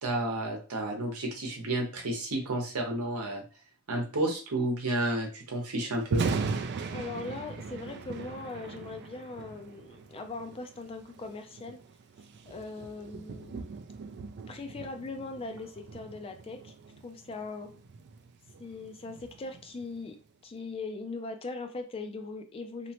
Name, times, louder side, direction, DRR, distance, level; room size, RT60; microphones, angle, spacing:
voice 1, 0.0-3.4 3.9-6.3, right 1 dB, 85° right, 1 dB, 0.8 m, -31 dB
Thunder, 6.0-20.1, right 4 dB, 50° right, 0.3 m, -39 dB
voice 2, 6.9-11.8 12.5-13.6 14.5-16.7 17.0-17.7 18.6-20.2 20.4-22.9, left 3 dB, 25° left, 6 dB, 0.3 m, -40 dB
2.9 x 2.0 x 2.8 m, 0.37 s
head